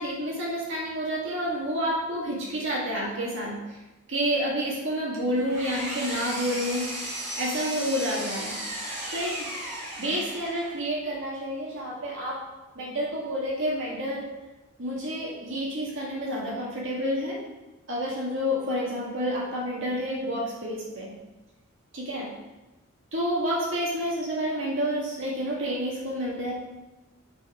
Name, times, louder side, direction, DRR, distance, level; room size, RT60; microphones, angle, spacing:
voice 1, 0.0-3.5 4.1-6.9 7.4-8.6 9.1-9.5 10.0-12.4 12.8-14.3 14.8-17.4 17.9-21.1 21.9-22.3 23.1-26.5, equal, 60° right, -4 dB, 1.8 m, -29 dB
Engine, 5.1-10.9, right 1 dB, 35° right, 2.6 m, -35 dB
8.7 x 4.2 x 4.8 m, 1.1 s
head